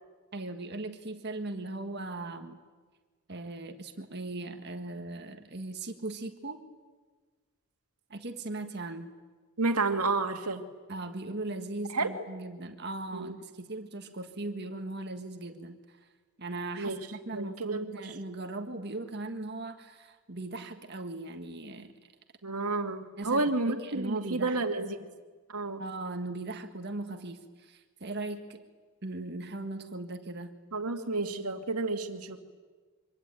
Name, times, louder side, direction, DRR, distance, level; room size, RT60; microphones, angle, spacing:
voice 1, 0.3-2.6 3.3-6.6 8.1-9.1 10.9-16.0 16.4-21.9 23.2-24.6 25.8-28.6 29.0-30.5, right 2 dB, 50° right, 6 dB, 1.7 m, -39 dB
voice 2, 9.6-10.6 11.9-12.1 13.1-13.3 16.8-17.0 17.3-18.1 22.4-25.1 25.5-25.8 30.7-32.4, right 3 dB, 90° right, 6 dB, 2.3 m, -30 dB
26.0 x 25.0 x 9.1 m, 1.4 s
head